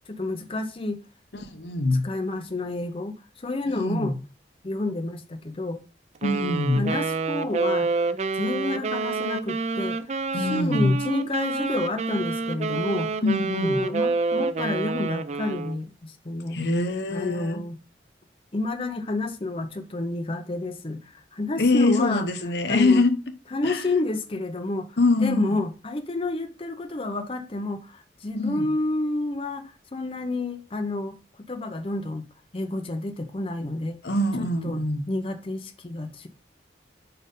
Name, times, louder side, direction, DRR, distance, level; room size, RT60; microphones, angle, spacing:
voice 1, 0.1-1.0 2.0-4.1 4.6-5.8 6.4-7.9 8.3-13.2 13.5-16.6 17.1-17.8 18.5-22.2 22.7-23.0 23.5-31.2 31.5-32.3 32.5-34.0 34.4-36.3, left 2 dB, 30° left, 0.6 m, -30 dB
voice 2, 1.3-2.0 3.7-4.2 6.2-6.9 10.3-11.0 13.2-13.9 16.5-17.6 21.6-23.2 23.6-23.9 25.0-25.6 28.4-28.7 34.0-35.0, left 2 dB, 75° left, 0.8 m, -24 dB
Wind instrument woodwind instrument, 6.2-15.8, right 4 dB, 40° right, 0.4 m, -28 dB
5.1 x 4.3 x 5.3 m
head